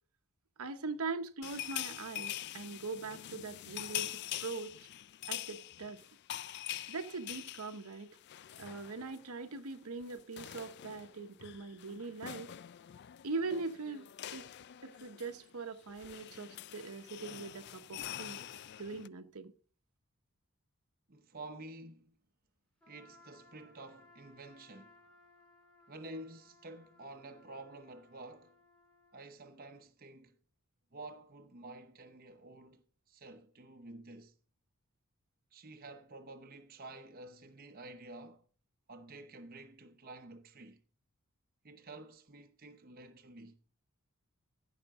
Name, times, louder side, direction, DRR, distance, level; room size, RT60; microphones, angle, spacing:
voice 1, 0.6-4.9 5.3-6.0 6.9-8.2 8.6-12.5 13.2-14.5 14.8-18.4 18.8-19.5, right 3 dB, 80° right, 1.0 m, -41 dB
sound 1, 1.4-9.3 9.6-9.8 10.0-19.1, left 12 dB, 50° left, 0.3 m, -45 dB
voice 2, 21.1-22.2 22.9-25.0 25.9-28.6 29.1-30.4 30.9-34.3 35.5-38.4 38.9-40.8 41.6-43.6, right 2 dB, 40° right, 0.9 m, -50 dB
Trumpet, 22.8-29.2, left 2 dB, 5° left, 2.6 m, -63 dB
15.0 x 6.0 x 3.6 m
head